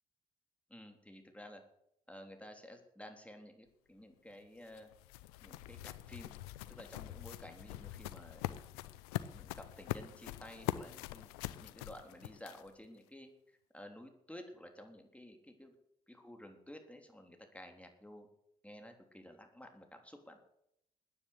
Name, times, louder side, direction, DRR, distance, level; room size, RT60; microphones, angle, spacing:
voice 1, 0.7-1.6 2.1-4.9 5.4-6.4 6.7-8.4 9.3-11.3 11.6-15.7 16.1-18.3 18.6-20.4, left 1 dB, 5° left, 4 dB, 3.5 m, -53 dB
sound 1, 4.3-12.9, left 15 dB, 85° left, 0.6 m, -43 dB
15.0 x 9.7 x 8.0 m, 0.75 s
hypercardioid pair, 45°, 19 cm